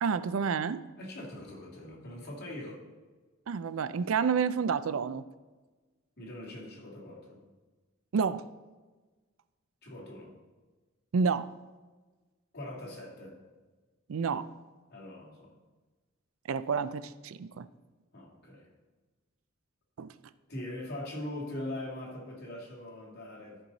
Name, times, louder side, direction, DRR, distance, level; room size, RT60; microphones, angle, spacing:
voice 1, 0.0-0.8 3.5-5.2 8.1-8.5 11.1-11.5 14.1-14.5 16.5-17.7 20.0-20.1, right 5 dB, 75° right, 15 dB, 0.4 m, -29 dB
voice 2, 1.0-2.8 6.2-7.4 9.8-10.3 12.5-13.4 14.9-15.5 18.1-18.7 20.5-23.6, left 1 dB, 50° left, -3 dB, 2.6 m, -41 dB
13.5 x 5.5 x 4.0 m, 1.3 s
head